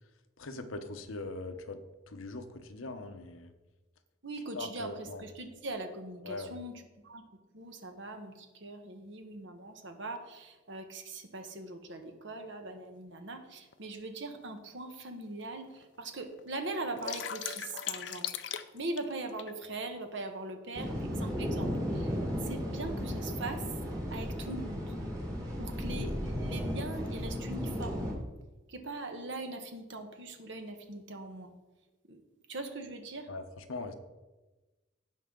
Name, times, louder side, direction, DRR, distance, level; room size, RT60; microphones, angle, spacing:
voice 1, 0.4-1.8 2.1-3.5 4.5-5.2 6.2-6.6 33.3-33.9, left 2 dB, 75° left, 8 dB, 0.9 m, -41 dB
voice 2, 4.2-7.2 7.5-18.3 18.7-22.2 22.4-23.6 24.1-24.9 25.6-28.1 28.7-31.5 32.1-32.2 32.5-33.3, right 2 dB, 60° right, 6 dB, 1.2 m, -41 dB
sound 1, 13.7-13.8 14.6-14.7 15.1-15.2 15.4-16.0 16.4-19.5, left 9 dB, 60° left, 0.5 m, -38 dB
sound 2, 20.7-28.1, equal, 15° right, 1.7 m, -35 dB
16.5 x 5.6 x 3.8 m, 1.2 s
head